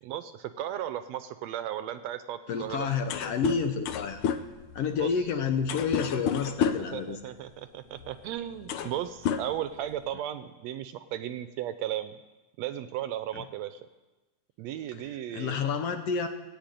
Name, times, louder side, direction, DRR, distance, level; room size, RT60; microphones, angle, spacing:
voice 1, 0.0-2.9 4.9-5.1 6.8-12.2 12.6-13.8 14.6-15.6, right 11 dB, 75° right, 11 dB, 1.7 m, -35 dB
voice 2, 2.5-4.2 4.7-7.2 13.3-13.4 15.3-16.3, left 6 dB, 65° left, 7 dB, 1.8 m, -29 dB
sound 1, 2.7-2.8 3.0-7.0 8.0-8.1 8.5-9.0 9.2-10.1, left 7 dB, 90° left, 1.1 m, -30 dB
17.0 x 8.6 x 9.1 m, 1.2 s
omnidirectional pair, 3.3 m